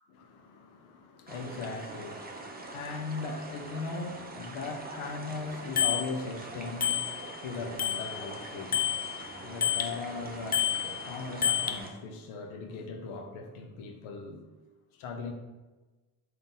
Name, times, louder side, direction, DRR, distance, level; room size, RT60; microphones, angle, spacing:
voice 1, 0.1-14.5 14.9-15.3, left 4 dB, 80° left, 5 dB, 0.7 m, -39 dB
sound 1, 1.3-11.9, right 2 dB, 20° right, 0.8 m, -44 dB
Bicycle bell, 5.8-6.1 6.8-7.4 7.8-10.0 10.5-11.8, left 9 dB, 20° left, 0.3 m, -29 dB
3.8 x 2.7 x 3.6 m, 1.2 s
supercardioid pair, 50°, 48 cm